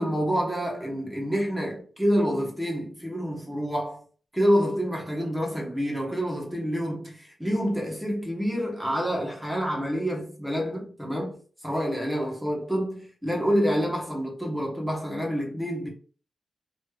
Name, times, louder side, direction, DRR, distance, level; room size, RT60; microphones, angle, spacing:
voice 1, 0.0-4.0 4.3-11.4 11.6-15.9, equal, 5° right, 1.1 m, -27 dB
3.2 x 3.0 x 2.3 m
wide cardioid pair, 125°, 0 cm